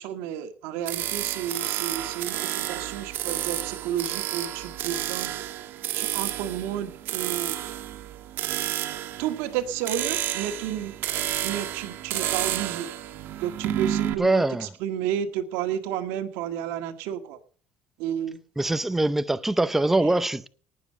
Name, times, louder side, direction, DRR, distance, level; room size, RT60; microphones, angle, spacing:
voice 1, 0.0-5.3 5.9-7.7 9.2-10.9 11.4-12.9 13.4-17.4 18.0-18.4 20.0-20.1, right 10 dB, 85° right, 1.8 m, -31 dB
sound 1, 0.9-14.1, right 12 dB, 60° right, 1.4 m, -31 dB
voice 2, 14.2-14.7 18.6-20.5, right 2 dB, 5° right, 0.6 m, -23 dB
19.0 x 7.2 x 6.6 m
cardioid pair, 140°, 4 cm